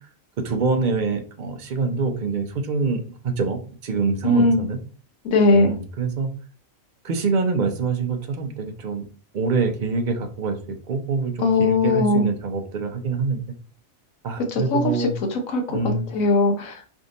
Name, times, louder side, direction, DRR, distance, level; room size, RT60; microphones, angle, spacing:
voice 1, 0.4-4.8 5.5-6.3 7.0-9.0 9.3-13.4 14.2-15.1 15.7-16.1, right 4 dB, 50° right, 5 dB, 0.6 m, -25 dB
voice 2, 4.2-4.6 5.2-5.7 11.4-12.3 14.5-16.9, left 2 dB, 75° left, 3 dB, 1.3 m, -20 dB
3.4 x 2.6 x 4.0 m, 0.40 s
omnidirectional pair, 1.4 m